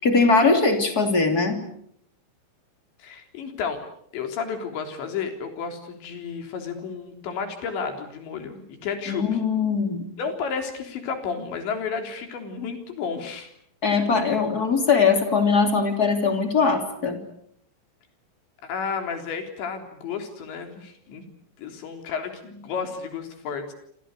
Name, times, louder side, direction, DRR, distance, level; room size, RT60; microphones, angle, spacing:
voice 1, 0.0-1.6 9.1-10.1 13.8-17.2, left 4 dB, 25° left, 5 dB, 2.8 m, -21 dB
voice 2, 3.0-3.8 4.1-9.4 10.2-13.5 18.6-21.3 21.6-23.7, left 6 dB, 65° left, 6 dB, 5.7 m, -32 dB
28.0 x 27.0 x 6.7 m, 0.69 s
omnidirectional pair, 5.7 m